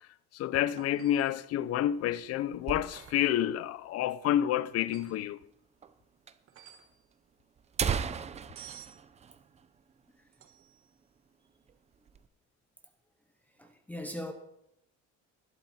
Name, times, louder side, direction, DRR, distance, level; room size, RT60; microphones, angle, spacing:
voice 1, 0.3-5.4, left 11 dB, 55° left, 0.6 m, -29 dB
sound 1, 0.8-1.4 2.9-3.4 4.8-5.2 6.5-7.0 8.6-9.0 10.3-10.8 13.6-13.7, right 9 dB, 45° right, 1.3 m, -52 dB
sound 2, 1.6-3.4 3.7-3.8 4.0-4.1 4.8-4.9 5.8-5.9 6.3-6.4 7.1-7.2 7.6-10.2 10.5-10.6 11.0-11.3 11.7-12.3, right 7 dB, 25° right, 0.5 m, -36 dB
voice 2, 13.6-14.3, left 1 dB, 5° left, 0.8 m, -39 dB
19.0 x 12.0 x 4.3 m
cardioid pair, 180°, 29 cm